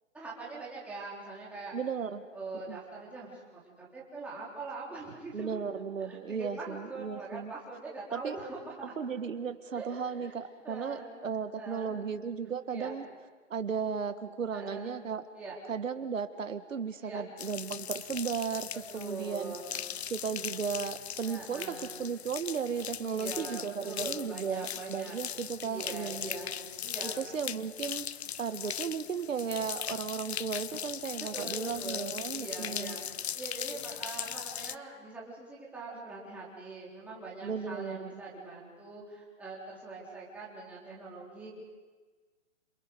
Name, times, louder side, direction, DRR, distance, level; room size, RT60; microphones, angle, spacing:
voice 1, 0.1-1.7 2.3-5.6 6.0-8.9 9.7-10.3 10.6-11.1 11.5-12.0 12.7-12.9 14.5-14.9 15.3-15.6 17.0-17.2 18.9-19.9 21.2-21.9 23.0-25.2 25.6-26.5 26.8-27.3 28.2-28.8 31.1-33.0 33.3-41.5, right 3 dB, 5° right, -6 dB, 3.8 m, -43 dB
voice 2, 1.7-2.3 2.7-2.8 5.3-7.5 8.1-8.4 9.0-13.0 13.5-15.2 15.7-19.6 20.1-26.3 27.0-33.0 37.4-38.2, right 6 dB, 85° right, 9 dB, 1.7 m, -35 dB
sound 1, 17.4-34.8, left 9 dB, 55° left, 0.7 m, -39 dB
27.5 x 27.0 x 5.4 m, 1.4 s
hypercardioid pair, 165°, 38 cm